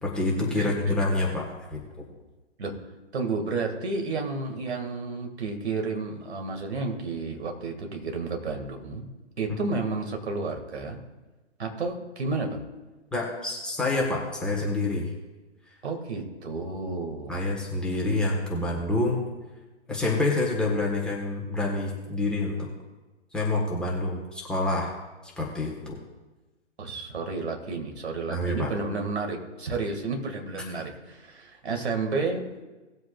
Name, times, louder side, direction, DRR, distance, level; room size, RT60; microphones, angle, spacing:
voice 1, 0.0-1.8 13.1-15.1 17.3-19.2 19.9-22.7 23.3-24.9 25.4-26.0 28.3-28.7, left 2 dB, ahead, -4 dB, 1.5 m, -27 dB
voice 2, 0.5-1.0 2.6-2.7 3.1-9.1 9.4-11.0 11.6-12.6 15.8-17.4 26.8-32.4, right 3 dB, 65° right, 3 dB, 2.2 m, -31 dB
19.0 x 7.8 x 2.5 m, 1.2 s
figure-of-eight pair, 135°, 35 cm